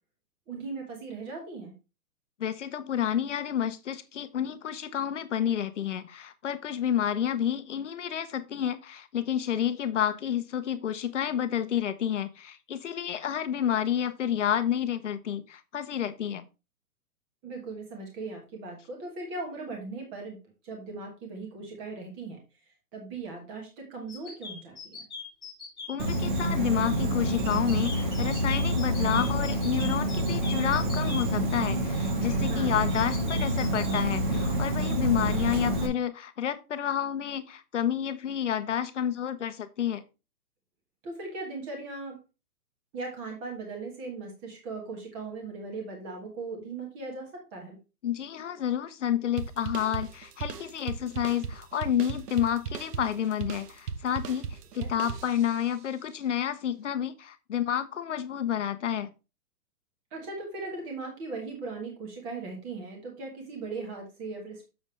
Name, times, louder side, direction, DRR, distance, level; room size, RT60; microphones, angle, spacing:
voice 1, 0.5-1.7 17.4-20.4 20.6-22.4 22.9-25.0 32.4-32.8 41.0-42.2 42.9-47.8 54.7-54.9 60.1-64.7, right 3 dB, 10° right, 1 dB, 1.3 m, -38 dB
voice 2, 2.4-16.4 25.9-40.0 48.0-54.5 54.7-59.1, left 9 dB, 50° left, 11 dB, 0.9 m, -30 dB
sound 1, 24.1-26.2 27.5-31.2 32.9-34.0, left 5 dB, 5° left, 0.6 m, -41 dB
Insect, 26.0-35.9, right 1 dB, 30° right, 1.5 m, -27 dB
sound 2, 49.4-55.7, right 6 dB, 80° right, 1.1 m, -37 dB
7.6 x 7.0 x 3.2 m, 0.29 s
hypercardioid pair, 175°, 47 cm